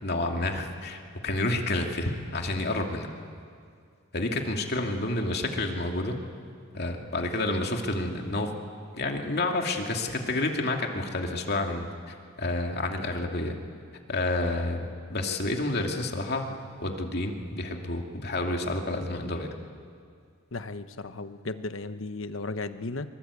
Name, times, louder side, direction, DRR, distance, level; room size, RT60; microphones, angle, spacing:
voice 1, 0.0-3.1 4.1-6.1 6.7-8.5 8.9-13.6 14.1-16.5 16.8-19.5, left 2 dB, 55° left, 2 dB, 2.5 m, -29 dB
voice 2, 20.5-23.1, left 3 dB, 75° left, 10 dB, 1.1 m, -35 dB
24.5 x 24.0 x 8.5 m, 2.2 s
head